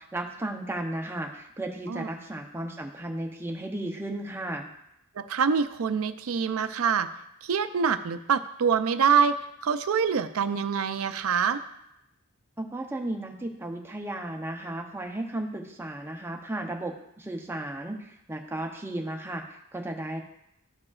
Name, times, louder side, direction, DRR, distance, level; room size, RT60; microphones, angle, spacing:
voice 1, 0.0-4.7 12.6-20.2, right 1 dB, 10° right, 2 dB, 0.6 m, -34 dB
voice 2, 5.2-7.1 7.4-9.4 9.6-11.6, right 6 dB, 70° right, 11 dB, 0.4 m, -25 dB
13.0 x 4.8 x 2.4 m, 0.81 s
head